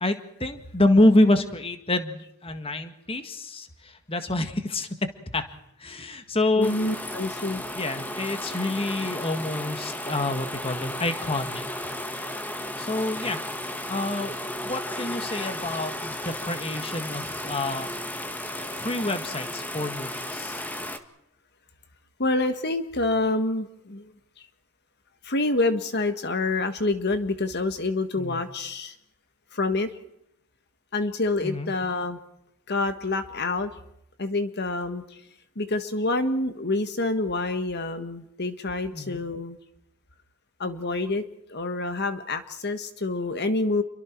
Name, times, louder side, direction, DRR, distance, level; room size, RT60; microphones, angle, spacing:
voice 1, 0.0-5.5 5.8-6.9 7.7-11.9 12.8-13.4 13.9-17.9 18.8-20.6 28.2-28.4 31.4-31.7 38.9-39.2, left 2 dB, 25° left, 8 dB, 1.8 m, -27 dB
voice 2, 6.6-7.6 12.2-12.3 22.2-24.1 25.2-29.0 29.5-29.9 30.9-32.2 32.7-33.7 34.2-35.2 35.6-39.6 40.6-41.2 41.5-43.8, left 2 dB, 50° left, 8 dB, 1.6 m, -27 dB
sound 1, 6.6-21.0, left 1 dB, 10° left, 1.7 m, -34 dB
29.5 x 23.5 x 4.6 m, 0.77 s
head